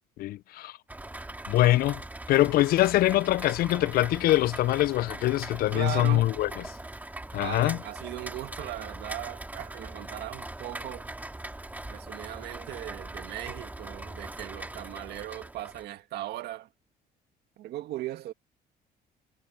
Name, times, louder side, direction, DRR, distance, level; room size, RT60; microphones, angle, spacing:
voice 1, 0.2-0.8 1.5-2.0 2.3-6.5 7.3-7.8, left 16 dB, 65° left, 0.4 m, -23 dB
Rain, 0.9-15.9, right 2 dB, 10° right, 2.7 m, -41 dB
voice 2, 5.7-6.3 7.4-11.1 11.9-16.7 17.6-18.3, right 14 dB, 75° right, 2.1 m, -38 dB
cardioid pair, 110°, 17 cm